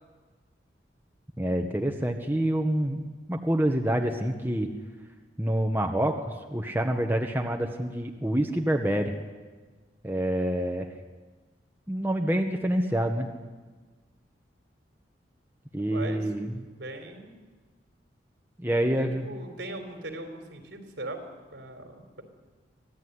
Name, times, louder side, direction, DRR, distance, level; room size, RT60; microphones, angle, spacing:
voice 1, 1.4-3.0 3.3-4.7 5.4-9.1 10.0-10.9 11.9-13.3 15.7-16.6 18.6-19.2, right 1 dB, 10° right, 3 dB, 1.3 m, -27 dB
voice 2, 15.9-16.2 16.6-17.4 18.8-21.2 21.5-22.2, right 1 dB, 70° right, 6 dB, 4.1 m, -40 dB
24.5 x 16.0 x 9.7 m, 1.4 s
head